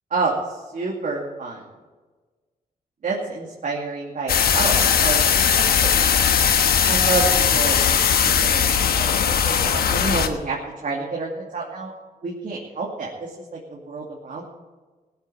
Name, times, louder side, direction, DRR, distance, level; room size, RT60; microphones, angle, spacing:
voice 1, 0.1-1.6 3.0-6.1 6.8-8.0 8.4-10.6 10.8-11.9 12.2-14.4, right 3 dB, 55° right, -2 dB, 2.5 m, -29 dB
sound 1, 4.3-10.3, left 7 dB, 90° left, 1.2 m, -19 dB
16.5 x 8.3 x 7.9 m, 1.3 s
cardioid pair, 100°, 15 cm